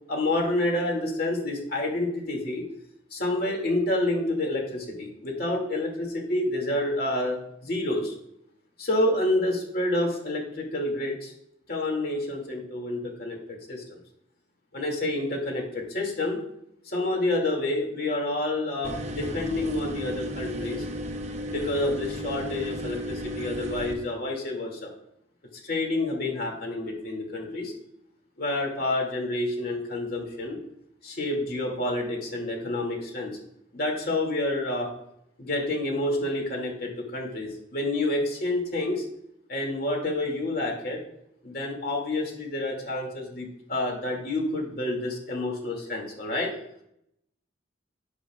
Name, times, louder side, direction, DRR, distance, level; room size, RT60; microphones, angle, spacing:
voice 1, 0.1-2.6 3.1-8.1 8.8-11.3 11.7-14.0 14.7-16.4 16.9-20.8 21.5-24.9 25.6-27.7 28.4-30.6 31.0-33.4 33.7-34.9 35.4-39.0 39.5-41.0 41.4-46.5, left 1 dB, 55° left, 0 dB, 2.4 m, -28 dB
sound 1, 18.8-23.9, equal, 35° right, 0.8 m, -34 dB
10.0 x 9.9 x 2.4 m, 0.74 s
head